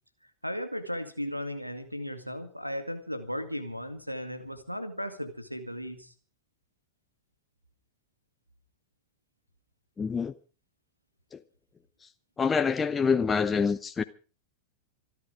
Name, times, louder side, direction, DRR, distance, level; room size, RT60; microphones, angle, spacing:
voice 1, 0.4-6.1, equal, 90° right, 2.1 m, -36 dB
voice 2, 10.0-10.3 11.3-11.4 12.4-14.0, left 5 dB, 15° left, 0.7 m, -26 dB
26.0 x 10.5 x 5.1 m
figure-of-eight pair, 90°, 0 cm